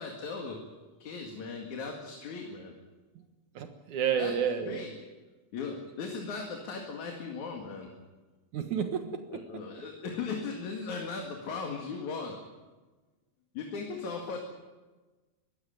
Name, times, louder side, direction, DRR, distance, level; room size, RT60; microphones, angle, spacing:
voice 1, 0.0-2.8 4.1-4.4 4.7-4.9 5.5-7.9 9.3-12.4 13.6-14.4, left 4 dB, 70° left, 2 dB, 3.5 m, -38 dB
voice 2, 3.6-4.8 8.5-9.6, right 7 dB, 75° right, 7 dB, 2.8 m, -31 dB
23.0 x 16.0 x 9.2 m, 1.2 s
omnidirectional pair, 3.5 m